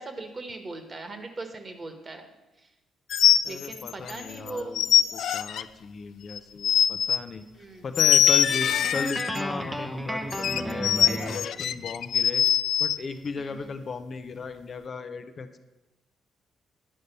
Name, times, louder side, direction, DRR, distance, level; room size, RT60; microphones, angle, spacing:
voice 1, 0.0-2.3 2.6-2.7 3.4-4.8 7.5-7.9 13.4-13.8, right 2 dB, 35° right, 6 dB, 1.5 m, -39 dB
sound 1, 3.1-4.2 4.5-5.6 6.4-7.2 7.9-9.4 10.3-13.0, left 9 dB, 70° left, 0.3 m, -22 dB
voice 2, 3.4-7.4 7.8-12.4 12.8-15.6, left 4 dB, 45° left, 8 dB, 0.7 m, -36 dB
Guitar, 8.3-11.5, right 1 dB, 10° right, 0.8 m, -33 dB
10.0 x 5.3 x 6.7 m, 1.0 s
cardioid pair, 90°, 0 cm